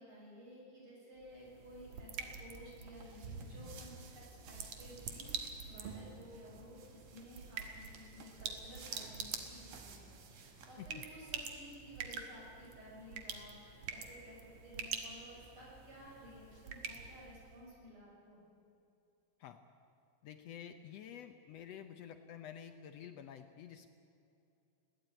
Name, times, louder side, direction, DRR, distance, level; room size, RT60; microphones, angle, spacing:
voice 1, 0.0-18.4, equal, 40° right, -4 dB, 7.6 m, -55 dB
sound 1, 1.2-17.6, right 6 dB, 60° right, 2.7 m, -47 dB
sound 2, 2.9-10.8, right 5 dB, 75° right, 3.6 m, -56 dB
voice 2, 20.2-23.9, left 9 dB, 75° left, 8 dB, 1.5 m, -50 dB
21.0 x 17.0 x 9.1 m, 2.6 s
omnidirectional pair, 3.8 m